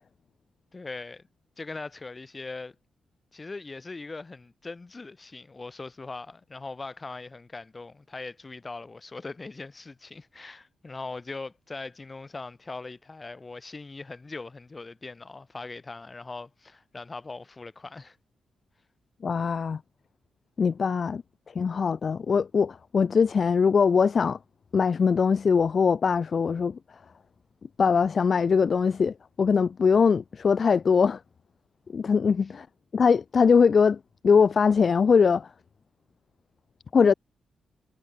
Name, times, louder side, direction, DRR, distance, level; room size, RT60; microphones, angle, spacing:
voice 1, 0.7-1.3 1.6-2.7 3.3-18.2 21.0-21.1 32.3-32.4, left 3 dB, 25° left, 1.2 m, -40 dB
voice 2, 19.2-19.8 20.6-21.2 21.6-24.4 24.7-26.8 27.8-31.2 31.9-32.7 32.9-34.0 34.2-35.5 36.9-37.1, left 5 dB, 45° left, 0.4 m, -22 dB
cardioid pair, 115°, 0 cm